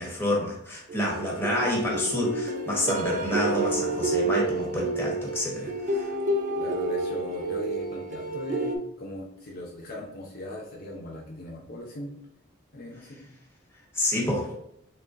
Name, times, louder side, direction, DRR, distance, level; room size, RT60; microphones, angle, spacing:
voice 1, 0.0-6.1 13.9-14.5, left 1 dB, 15° left, -3 dB, 1.0 m, -28 dB
sound 1, 0.9-8.8, right 2 dB, 40° right, 0.3 m, -29 dB
voice 2, 6.6-12.1 12.7-13.3, left 1 dB, 50° left, -2 dB, 0.6 m, -39 dB
3.7 x 3.3 x 2.5 m, 0.74 s
head